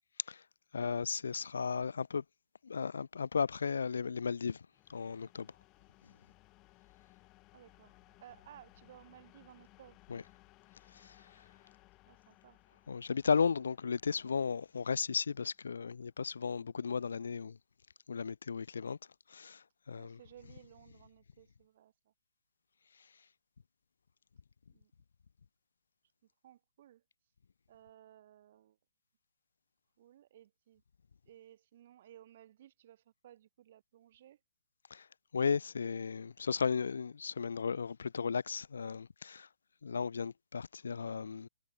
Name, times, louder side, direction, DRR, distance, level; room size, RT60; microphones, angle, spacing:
voice 1, 0.7-2.2 2.6-5.5 10.1-10.2 10.9-11.4 12.9-17.6 18.1-19.0 19.3-20.2 34.9-35.1 35.3-39.5 39.8-41.5, left 6 dB, 60° left, 0.7 m, -35 dB
sound 1, 4.7-16.3, left 21 dB, 20° left, 7.9 m, -64 dB
voice 2, 7.5-10.0 12.1-12.6 19.9-22.1 24.7-24.9 26.2-27.0 27.7-28.8 30.0-30.8 31.3-34.4, right 11 dB, 40° right, 2.9 m, -58 dB
figure-of-eight pair, 130°, 0 cm